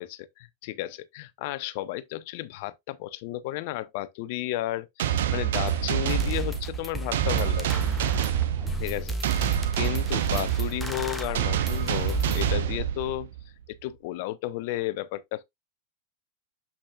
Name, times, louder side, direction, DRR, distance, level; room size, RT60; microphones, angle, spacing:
voice 1, 0.0-7.8 8.8-13.3 13.8-15.4, left 15 dB, 50° left, 0.6 m, -33 dB
sound 1, 5.0-13.5, right 10 dB, 60° right, 0.7 m, -27 dB
sound 2, 5.7-5.8 6.1-12.5, right 1 dB, ahead, 1.2 m, -33 dB
7.4 x 6.1 x 2.4 m
figure-of-eight pair, 90°, 0 cm